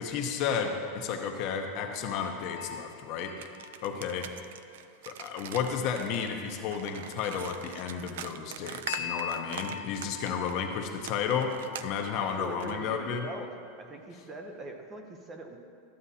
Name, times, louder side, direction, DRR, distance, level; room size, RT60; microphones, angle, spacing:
voice 1, 0.0-3.3 3.8-4.3 5.1-13.3, left 6 dB, 40° left, 4 dB, 0.7 m, -32 dB
sound 1, 1.7-4.6 8.9-12.4, left 8 dB, 85° left, 0.5 m, -42 dB
sound 2, 3.4-10.6 11.0-12.8, right 9 dB, 75° right, 0.4 m, -43 dB
voice 2, 12.2-13.5 13.8-15.6, right 2 dB, 15° right, 4 dB, 0.5 m, -42 dB
13.0 x 8.6 x 2.8 m, 2.3 s
supercardioid pair, 170°, 0 cm